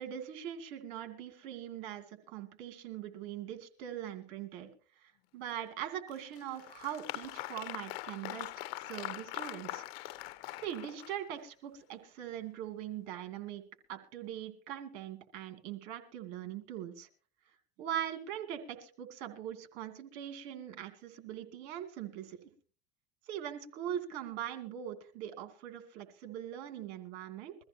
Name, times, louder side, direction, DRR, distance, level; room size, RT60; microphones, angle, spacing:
voice 1, 0.0-4.7 5.0-9.8 10.6-13.6 13.9-17.1 17.8-22.5 23.3-27.6, right 10 dB, 70° right, 7 dB, 2.6 m, -41 dB
Applause, 6.1-11.4, left 17 dB, 75° left, 0.9 m, -42 dB
22.5 x 14.5 x 2.9 m, 0.41 s
supercardioid pair, 95°, 30 cm